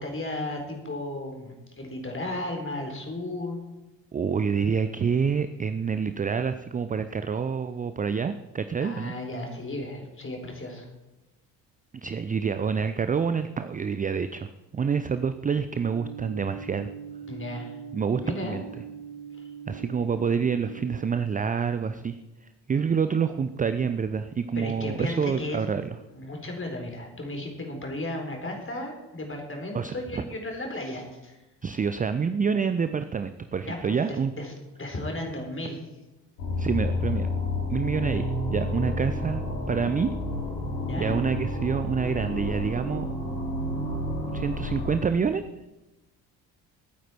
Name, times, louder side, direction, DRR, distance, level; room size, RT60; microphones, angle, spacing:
voice 1, 0.0-3.6 8.8-10.9 17.3-17.8 18.2-18.6 24.6-25.6 26.1-31.4 33.7-34.5 34.8-35.8 40.9-41.2, left 1 dB, 25° left, 2 dB, 3.9 m, -34 dB
voice 2, 4.1-9.1 12.0-16.9 17.9-18.6 19.7-25.9 29.7-30.2 31.6-34.3 36.6-37.3 37.7-40.1 41.0-43.1 44.3-45.4, right 6 dB, 15° right, 11 dB, 0.5 m, -27 dB
sound 1, 15.8-20.9, right 7 dB, 55° right, 3.1 m, -41 dB
sound 2, 36.4-45.0, left 1 dB, 75° left, 3.4 m, -30 dB
21.5 x 9.2 x 4.5 m, 1.0 s
figure-of-eight pair, 45°, 50 cm